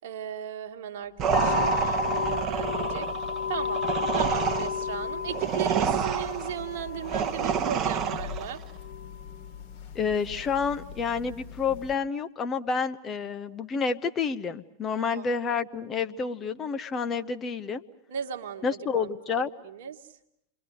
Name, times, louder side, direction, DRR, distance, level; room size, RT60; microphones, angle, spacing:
voice 1, 0.0-3.1 3.5-3.8 4.1-8.6 15.0-15.2 18.1-20.1, right 9 dB, 55° right, 6 dB, 1.6 m, -36 dB
sound 1, 1.2-8.6, right 7 dB, 30° right, 1.1 m, -28 dB
sound 2, 1.3-11.9, left 6 dB, 50° left, 2.7 m, -34 dB
voice 2, 9.9-17.8 18.6-19.5, left 5 dB, 25° left, 8 dB, 1.0 m, -29 dB
28.5 x 22.5 x 7.8 m, 0.77 s
figure-of-eight pair, 90°, 0 cm